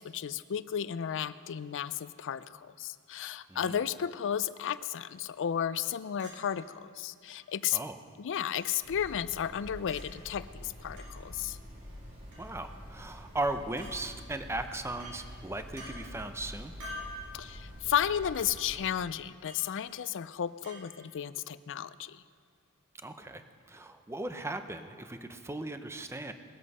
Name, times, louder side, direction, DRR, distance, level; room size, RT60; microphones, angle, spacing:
voice 1, 0.0-7.8 8.2-11.6 17.3-22.2, left 9 dB, 60° left, 15 dB, 0.4 m, -33 dB
voice 2, 3.5-3.8 7.7-8.0 12.4-16.7 23.0-23.4 23.7-26.3, right 2 dB, 10° right, 8 dB, 0.6 m, -37 dB
Chink clink, 6.2-6.4 7.3-7.4 8.5-8.7 9.9-10.0 11.0-11.1 12.3-12.5 13.8-13.9 15.0-15.2 15.8-15.9 16.8-17.2 18.3-18.5 19.5-19.7 20.6-20.8, left 1 dB, 85° right, 4.1 m, -45 dB
sound 1, 8.8-18.8, equal, 40° right, 3.1 m, -47 dB
20.0 x 8.2 x 5.4 m, 2.1 s
head